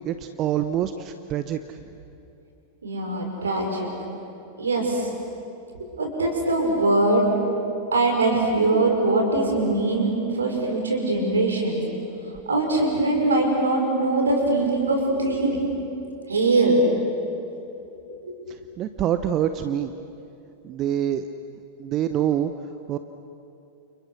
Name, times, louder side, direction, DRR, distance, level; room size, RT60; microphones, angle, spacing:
voice 1, 0.0-1.8 18.5-19.9 20.6-21.3 21.8-22.5 22.9-23.0, right 10 dB, 35° right, 10 dB, 0.9 m, -26 dB
voice 2, 2.8-3.9 4.6-5.1 6.0-7.3 7.9-11.8 12.5-15.6 16.3-16.8, right 2 dB, 70° right, 2 dB, 5.6 m, -22 dB
29.5 x 29.5 x 6.4 m, 2.8 s
figure-of-eight pair, 90°, 0 cm